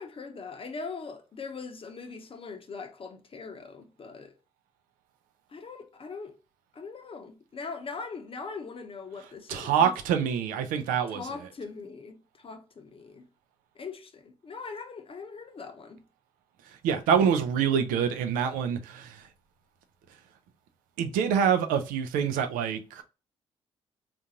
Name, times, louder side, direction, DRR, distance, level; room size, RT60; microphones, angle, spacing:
voice 1, 0.0-4.3 5.5-6.3 6.7-9.9 11.1-13.3 13.8-16.0, left 4 dB, 40° left, 0.7 m, -41 dB
voice 2, 9.5-11.3 16.7-19.3 21.0-23.0, right 7 dB, 70° right, 0.5 m, -26 dB
3.8 x 2.5 x 2.7 m
hypercardioid pair, 45°, 14 cm